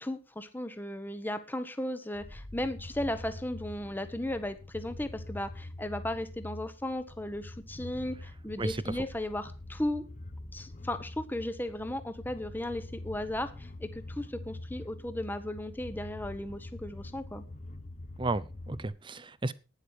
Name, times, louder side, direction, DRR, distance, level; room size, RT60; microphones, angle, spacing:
voice 1, 0.0-10.0 10.5-17.4, left 1 dB, 10° left, 1.0 m, -36 dB
sound 1, 2.1-18.9, left 2 dB, 35° left, 1.1 m, -45 dB
voice 2, 8.6-8.9 18.2-19.5, right 2 dB, 25° right, 0.5 m, -33 dB
11.5 x 10.0 x 4.8 m
head